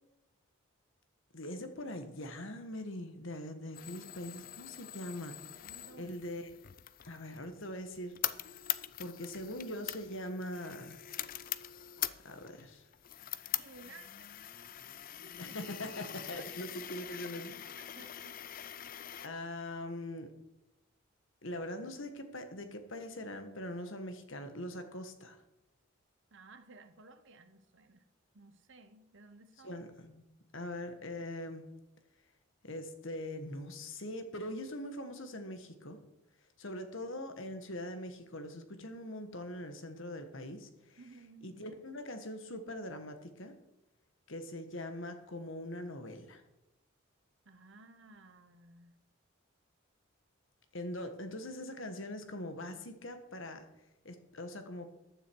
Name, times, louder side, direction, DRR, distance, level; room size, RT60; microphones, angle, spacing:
voice 1, 1.3-5.6 6.0-6.5 7.0-8.1 9.0-11.0 12.2-12.9 15.4-17.5 19.2-20.3 21.4-25.4 29.6-30.3 30.5-31.6 32.6-36.0 36.6-41.0 41.4-43.5 44.3-46.4 50.7-53.6 54.0-54.9, left 1 dB, 60° left, 7 dB, 1.5 m, -42 dB
sound 1, 3.7-19.3, left 12 dB, 40° left, 0.4 m, -43 dB
voice 2, 5.6-6.2 13.6-14.7 15.2-15.6 16.1-16.5 17.8-18.4 26.3-28.0 28.3-29.8 41.0-41.5 47.4-49.0, right 3 dB, 55° right, 7 dB, 1.0 m, -56 dB
14.5 x 9.7 x 4.7 m, 0.91 s
head